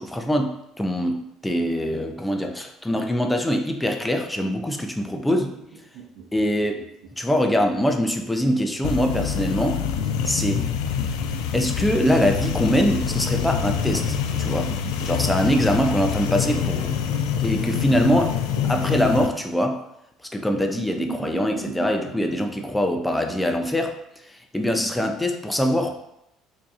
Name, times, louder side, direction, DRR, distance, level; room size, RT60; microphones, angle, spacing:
voice 1, 0.0-5.5 6.3-6.9 7.2-9.8 10.2-10.7 11.5-14.7 15.0-16.9 17.4-18.3 18.6-19.8 20.3-24.0 24.3-26.0, equal, 10° left, 4 dB, 0.5 m, -23 dB
sound 1, 5.5-7.3 8.4-10.1 11.1-13.0 14.1-15.6 17.0-17.6 17.9-19.4 20.5-22.1, right 6 dB, 75° right, 0.6 m, -39 dB
sound 2, 8.8-19.3, left 8 dB, 85° left, 0.3 m, -26 dB
4.5 x 2.7 x 2.5 m, 0.82 s
supercardioid pair, 90°, 0 cm